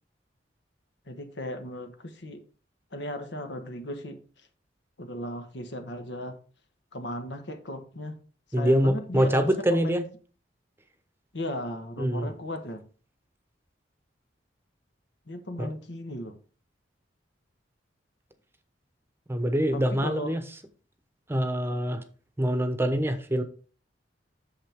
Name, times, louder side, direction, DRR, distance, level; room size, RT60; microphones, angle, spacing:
voice 1, 1.1-2.4 2.9-4.2 5.0-6.4 6.9-8.2 8.5-10.0 11.3-12.8 15.3-16.3 19.7-20.3, left 1 dB, 70° left, 1.4 m, -36 dB
voice 2, 8.5-10.0 12.0-12.3 15.6-15.7 19.3-20.4 21.3-22.0 22.4-23.4, equal, 15° right, 0.9 m, -25 dB
8.7 x 6.9 x 3.6 m
head